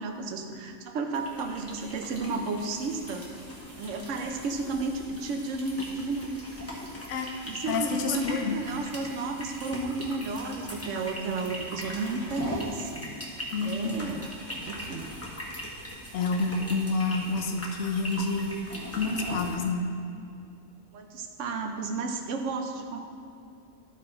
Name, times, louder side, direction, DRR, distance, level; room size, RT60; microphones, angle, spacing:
voice 1, 0.0-3.3 3.8-6.4 7.5-13.1 13.6-14.3 14.6-15.1 20.9-23.0, right 3 dB, 75° right, 4 dB, 1.1 m, -33 dB
sound 1, 1.1-19.6, equal, 10° left, 1.2 m, -40 dB
voice 2, 7.7-8.6 13.5-14.0 16.1-18.5 19.0-19.9, left 3 dB, 70° left, 4 dB, 1.0 m, -28 dB
13.0 x 4.3 x 4.3 m, 2.6 s
omnidirectional pair, 1.3 m